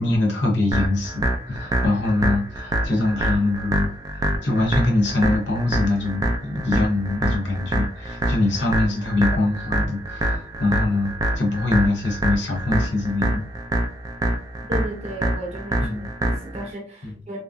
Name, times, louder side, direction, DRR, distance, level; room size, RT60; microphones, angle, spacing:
voice 1, 0.0-13.4 15.8-16.1 17.0-17.1, left 2 dB, 85° left, 0.8 m, -23 dB
sound 1, 0.7-16.7, right 1 dB, 20° right, 0.3 m, -25 dB
voice 2, 14.6-17.4, right 1 dB, 35° right, 0.8 m, -34 dB
2.8 x 2.4 x 2.2 m
head